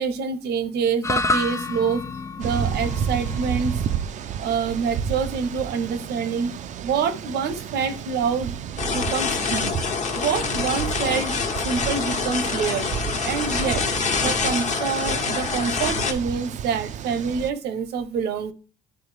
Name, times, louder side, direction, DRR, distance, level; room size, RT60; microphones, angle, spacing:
voice 1, 0.0-2.0 2.4-3.7 4.4-6.5 6.8-8.5 8.9-9.7 10.1-11.4 11.6-13.8 14.2-18.5, right 6 dB, 75° right, 12 dB, 0.9 m, -26 dB
sound 1, 1.0-9.4, left 2 dB, 15° left, 0.4 m, -32 dB
sound 2, 2.4-17.5, right 8 dB, 45° right, 0.4 m, -31 dB
sound 3, 8.8-16.1, left 5 dB, 45° left, 1.2 m, -26 dB
10.0 x 3.8 x 3.3 m, 0.35 s
cardioid pair, 110°, 17 cm